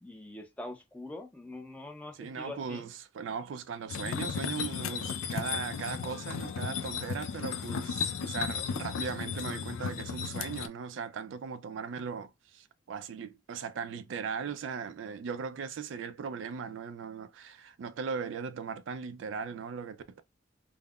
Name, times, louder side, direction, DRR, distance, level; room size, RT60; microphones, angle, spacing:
voice 1, 0.0-2.9, left 2 dB, 5° left, 0.4 m, -44 dB
voice 2, 2.2-20.2, right 6 dB, 70° right, 0.3 m, -38 dB
sound 1, 3.9-10.7, left 6 dB, 90° left, 0.3 m, -35 dB
3.5 x 2.0 x 2.3 m
head